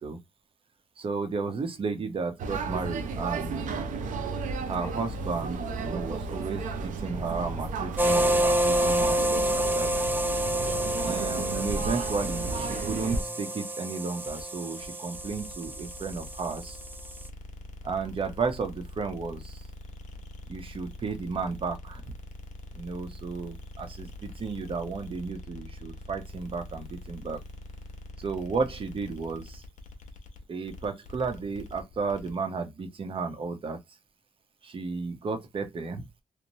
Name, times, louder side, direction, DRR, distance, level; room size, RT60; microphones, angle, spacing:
voice 1, 1.0-3.8 4.7-9.9 11.0-16.8 17.8-19.6 20.5-22.1 22.7-27.4 28.2-29.6 30.5-33.8 34.6-36.0, right 4 dB, 45° right, 0.7 m, -33 dB
sound 1, 2.4-13.2, right 4 dB, 85° right, 0.5 m, -33 dB
sound 2, 8.0-17.3, right 1 dB, 15° right, 0.3 m, -28 dB
sound 3, 14.2-32.4, left 1 dB, 70° left, 0.7 m, -44 dB
3.0 x 2.1 x 2.7 m
cardioid pair, 115°, 13 cm